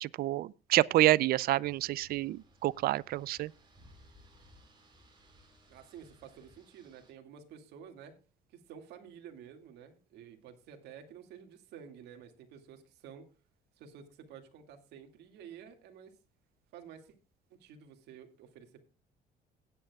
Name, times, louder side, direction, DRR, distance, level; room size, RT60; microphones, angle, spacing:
voice 1, 0.0-3.5, right 16 dB, 65° right, 0.4 m, -28 dB
sound 1, 1.6-7.1, equal, 25° right, 5.3 m, -61 dB
voice 2, 5.7-8.2 8.5-13.3 13.8-16.1 16.7-17.1 17.6-18.8, right 8 dB, 80° right, 2.2 m, -51 dB
17.5 x 9.1 x 2.3 m
cardioid pair, 110°, 17 cm